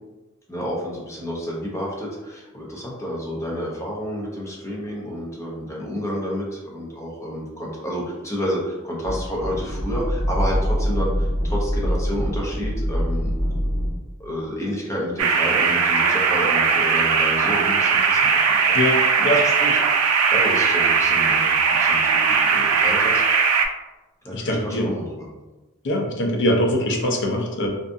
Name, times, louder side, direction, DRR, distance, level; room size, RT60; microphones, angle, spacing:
voice 1, 0.5-13.3 14.2-18.8 19.3-23.2 24.2-25.3, equal, 15° left, -4 dB, 0.6 m, -30 dB
sound 1, 9.0-13.9, equal, 45° left, 1.1 m, -24 dB
sound 2, 15.2-23.7, right 5 dB, 80° right, 0.3 m, -19 dB
voice 2, 18.7-19.4 24.3-24.9 25.8-27.7, left 1 dB, 60° left, 1 dB, 0.5 m, -22 dB
2.5 x 2.3 x 2.5 m, 1.1 s
head